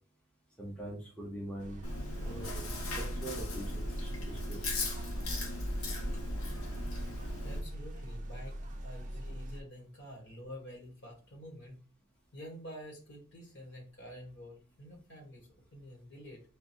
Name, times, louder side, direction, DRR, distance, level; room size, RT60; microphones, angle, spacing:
voice 1, 0.6-1.8 2.1-2.6 2.9-4.6, right 1 dB, 5° left, -4 dB, 0.9 m, -43 dB
sound 1, 1.6-9.6, right 1 dB, 35° right, 0.5 m, -42 dB
Chewing mastication, 1.8-7.6, left 1 dB, 75° left, 0.9 m, -37 dB
voice 2, 7.4-11.8 12.3-16.4, equal, 55° left, 0 dB, 1.5 m, -48 dB
3.6 x 2.3 x 4.4 m, 0.38 s
head